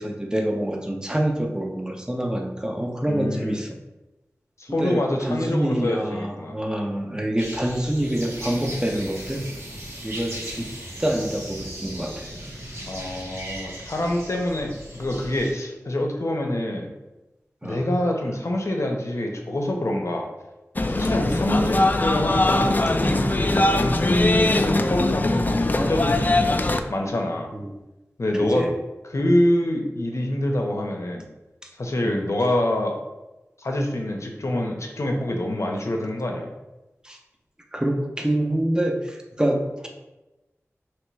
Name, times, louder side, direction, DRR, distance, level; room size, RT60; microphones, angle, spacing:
voice 1, 0.0-3.8 4.7-9.4 10.0-10.7 11.0-12.3 17.6-17.8 21.3-21.4 25.6-26.0 27.5-27.7 28.3-28.7 32.0-32.3 37.0-37.2 37.7-39.9, right 1 dB, 15° right, 1 dB, 0.7 m, -26 dB
voice 2, 3.1-3.6 4.6-6.6 12.9-16.9 17.6-20.3 20.9-26.5 26.9-27.5 28.2-28.7 29.1-31.3 31.8-33.0 33.6-36.5, left 1 dB, 65° left, 2 dB, 0.8 m, -25 dB
sound 1, 7.4-15.5, right 1 dB, 55° right, 1.2 m, -39 dB
sound 2, 7.7-14.6, equal, 75° right, 1.2 m, -42 dB
sound 3, 20.8-26.8, left 2 dB, 35° left, 0.3 m, -21 dB
3.1 x 3.0 x 4.6 m, 1.0 s
wide cardioid pair, 45°, 5 cm